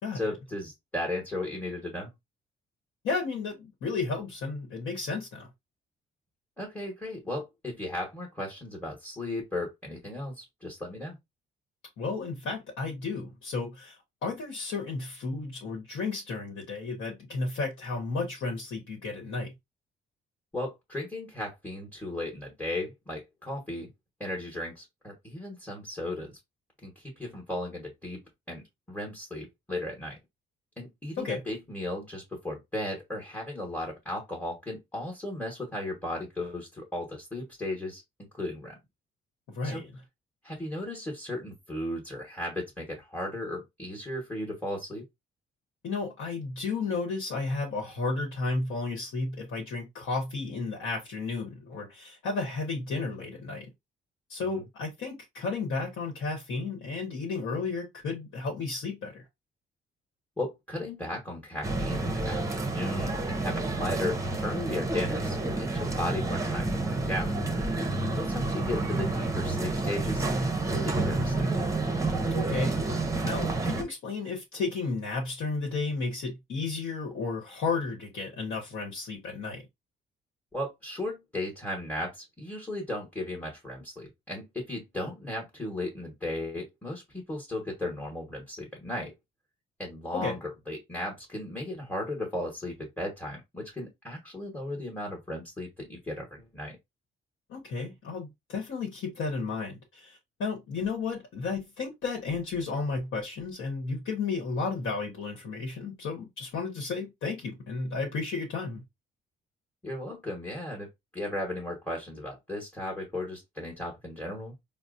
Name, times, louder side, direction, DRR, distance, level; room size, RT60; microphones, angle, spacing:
voice 1, 0.1-2.1 6.6-11.2 20.5-23.9 24.2-26.4 26.8-28.2 28.5-30.2 30.8-38.0 38.3-38.7 39.6-39.8 40.4-45.0 54.4-54.6 60.4-67.4 68.0-71.5 80.5-89.1 89.8-96.8 109.8-114.5, left 1 dB, 10° left, 1.1 m, -36 dB
voice 2, 3.0-5.5 12.0-19.5 31.2-31.4 39.5-39.9 45.8-53.7 54.3-59.2 72.3-79.7 90.1-90.4 97.5-108.8, left 4 dB, 75° left, 1.1 m, -33 dB
sound 1, 61.6-73.8, right 2 dB, 15° right, 0.7 m, -29 dB
4.1 x 2.0 x 2.5 m
cardioid pair, 90°, 20 cm